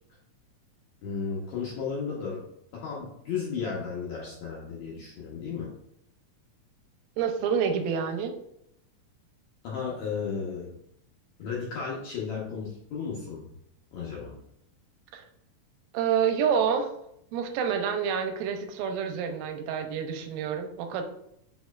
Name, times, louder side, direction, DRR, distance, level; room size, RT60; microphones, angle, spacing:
voice 1, 1.0-2.4 2.7-5.7 9.6-10.7 11.4-13.5 13.9-14.4, left 6 dB, 75° left, -4 dB, 1.7 m, -34 dB
voice 2, 7.2-8.3 15.1-15.2 15.9-16.9 17.3-21.0, right 7 dB, 85° right, 6 dB, 2.4 m, -28 dB
5.3 x 4.3 x 2.3 m, 0.75 s
omnidirectional pair, 4.1 m